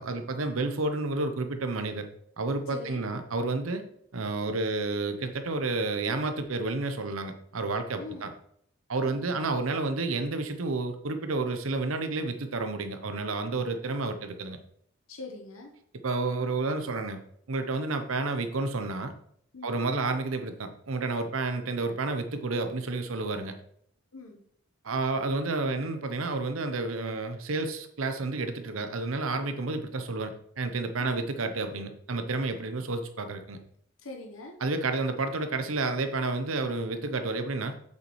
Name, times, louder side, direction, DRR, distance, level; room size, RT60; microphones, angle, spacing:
voice 1, 0.0-2.1 2.4-3.8 4.1-8.3 8.9-14.6 16.0-17.2 17.5-19.1 19.6-23.5 24.8-33.6 34.6-37.7, right 3 dB, 85° right, 8 dB, 0.8 m, -30 dB
voice 2, 2.7-3.0 8.0-8.3 8.9-9.3 15.1-15.7 19.5-19.8 24.1-24.4 31.0-31.2 34.0-34.6, left 3 dB, 80° left, 2 dB, 1.1 m, -43 dB
8.3 x 6.7 x 3.2 m, 0.66 s
head